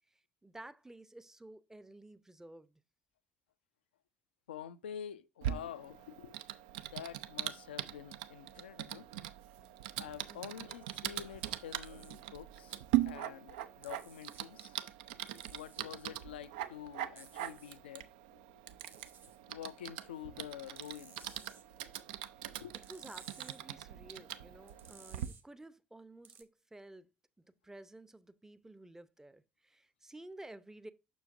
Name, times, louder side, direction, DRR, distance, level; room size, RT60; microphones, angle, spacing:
voice 1, 0.4-2.8 10.3-10.7 22.9-27.1 27.4-30.9, right 1 dB, 10° right, 0.6 m, -53 dB
voice 2, 4.5-6.4 6.9-9.1 10.0-14.8 15.5-18.1 18.3-18.4 19.2-21.4 22.6-22.8, left 10 dB, 80° left, 0.4 m, -48 dB
Typing, 5.4-25.3, right 13 dB, 70° right, 0.4 m, -41 dB
sound 1, 11.8-12.2 13.8-14.4 15.3-15.8 17.2-17.8 18.8-19.4 20.8-21.6 22.7-23.6 24.7-25.4 26.2-26.4, right 5 dB, 40° right, 1.2 m, -57 dB
6.9 x 6.2 x 2.5 m
figure-of-eight pair, 50°, 6 cm